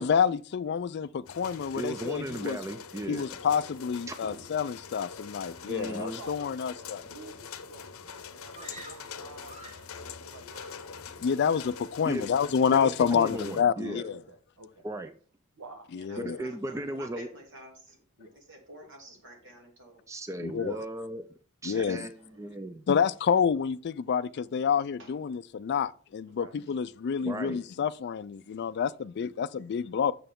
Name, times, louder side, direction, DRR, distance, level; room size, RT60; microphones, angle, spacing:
voice 1, 0.0-2.6 3.1-7.0 11.2-14.2 15.9-16.4 20.4-20.8 21.6-22.1 22.9-30.1, left 7 dB, 50° left, 0.3 m, -28 dB
sound 1, 1.3-13.6, left 6 dB, 70° left, 0.7 m, -44 dB
voice 2, 1.7-3.3 4.1-4.2 5.7-6.2 12.0-12.2 12.7-14.1 14.8-15.1 16.2-17.3 20.1-21.2 21.6-22.8 27.2-27.6, right 1 dB, 15° right, 0.4 m, -36 dB
voice 3, 3.1-3.8 4.2-4.7 5.6-11.1 13.8-14.9 15.6-15.9 18.2-18.3 20.6-21.0 22.2-22.3 26.3-26.5, right 3 dB, 85° right, 1.3 m, -50 dB
Screaming, 8.5-10.0 10.5-11.1 11.4-11.8, right 2 dB, 35° right, 1.2 m, -50 dB
voice 4, 15.9-20.0 22.3-22.5 24.8-25.2 25.7-25.8 26.3-26.4 26.8-26.9, right 1 dB, 60° right, 2.8 m, -51 dB
9.0 x 6.7 x 3.7 m
head